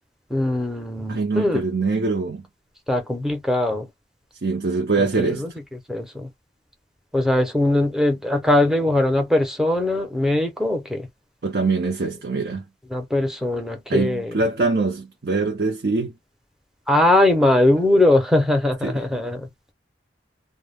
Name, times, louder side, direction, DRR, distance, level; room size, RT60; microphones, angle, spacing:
voice 1, 0.3-1.6 2.9-3.9 5.2-5.5 5.9-6.3 7.1-11.1 12.9-14.3 16.9-19.5, left 1 dB, 5° right, 0.6 m, -20 dB
voice 2, 1.1-2.5 4.4-5.4 11.4-12.6 13.9-16.1 18.8-19.2, right 3 dB, 60° right, 0.6 m, -23 dB
2.2 x 2.1 x 3.4 m
head